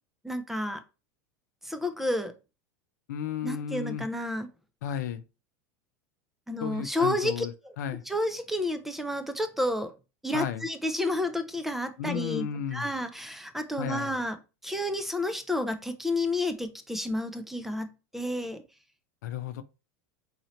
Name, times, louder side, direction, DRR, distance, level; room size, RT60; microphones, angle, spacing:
voice 1, 0.2-0.8 1.6-2.3 3.4-4.5 6.5-7.7 8.1-9.9 10.2-12.5 12.7-14.4 14.6-17.9 18.1-18.6, left 1 dB, 5° right, 0.5 m, -30 dB
voice 2, 3.1-4.1 4.8-5.2 6.6-7.5 7.8-8.0 10.3-10.7 12.0-12.9 13.8-14.1 19.2-19.6, left 9 dB, 85° left, 0.5 m, -33 dB
3.9 x 2.8 x 3.1 m
supercardioid pair, 120°, 9 cm